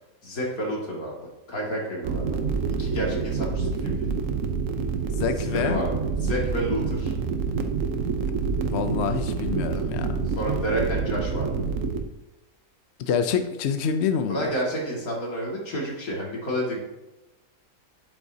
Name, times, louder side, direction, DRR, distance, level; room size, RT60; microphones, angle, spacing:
voice 1, 0.2-1.2 1.5-2.4 2.8-4.1 5.4-7.1 10.4-11.7 14.3-16.8, right 1 dB, 75° left, -3 dB, 2.7 m, -30 dB
sound 1, 2.0-12.0, right 5 dB, 65° right, 1.1 m, -27 dB
voice 2, 5.1-5.8 8.7-10.3 13.0-14.5, left 6 dB, 60° left, 8 dB, 0.8 m, -27 dB
9.4 x 8.8 x 2.8 m, 1.0 s
omnidirectional pair, 1.5 m